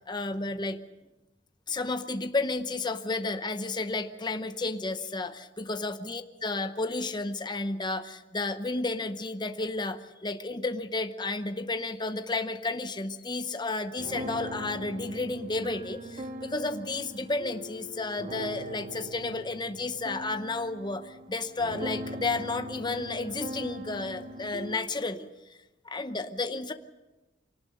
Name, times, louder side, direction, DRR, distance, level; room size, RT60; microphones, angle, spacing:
voice 1, 0.1-0.8 1.7-25.3 25.9-26.7, left 3 dB, 25° left, 9 dB, 0.8 m, -32 dB
sound 1, 14.0-24.8, equal, 40° right, 1.4 m, -41 dB
24.0 x 18.5 x 6.5 m, 1.1 s
head